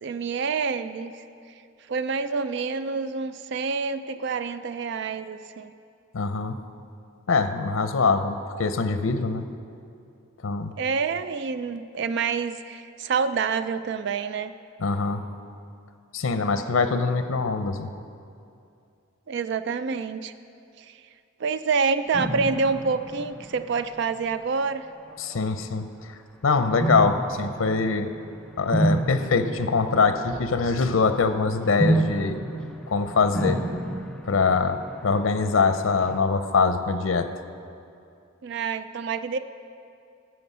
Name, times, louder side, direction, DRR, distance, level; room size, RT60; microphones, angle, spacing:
voice 1, 0.0-1.1 1.9-5.7 10.8-14.5 19.3-20.3 20.8-21.0 21.4-24.9 38.4-39.4, right 5 dB, 60° right, 12 dB, 0.4 m, -27 dB
voice 2, 6.1-6.6 7.3-9.5 10.4-10.7 14.8-15.2 16.1-17.9 25.2-25.9 26.4-28.1 28.6-32.3 32.9-33.6 34.3-37.3, left 4 dB, 85° left, 9 dB, 0.6 m, -23 dB
sound 1, 22.1-24.4 25.1-25.5 26.8-30.9 31.8-36.2, right 2 dB, 5° left, 0.6 m, -30 dB
14.0 x 7.6 x 5.5 m, 2.5 s
head